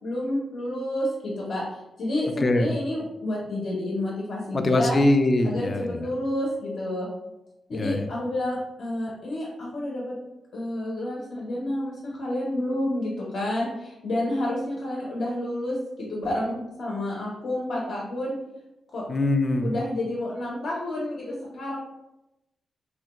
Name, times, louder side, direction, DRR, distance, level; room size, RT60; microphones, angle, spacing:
voice 1, 0.0-5.0 5.4-7.1 7.7-10.1 10.5-18.3 18.9-19.0 19.6-21.8, left 1 dB, 65° left, -4 dB, 0.8 m, -29 dB
voice 2, 4.5-6.0 7.7-8.1 19.1-19.7, left 2 dB, 35° left, 7 dB, 0.3 m, -22 dB
3.2 x 2.2 x 3.0 m, 0.95 s
cardioid pair, 110°, 0 cm